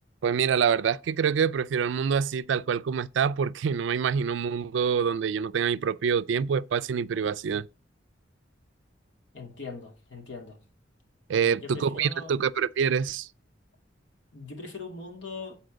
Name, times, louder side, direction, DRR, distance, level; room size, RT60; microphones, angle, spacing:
voice 1, 0.2-7.7 11.3-13.3, right 7 dB, 75° right, 0.3 m, -26 dB
voice 2, 9.3-10.6 11.4-12.3 14.3-15.6, left 4 dB, 75° left, 2.2 m, -41 dB
7.8 x 4.2 x 5.0 m
head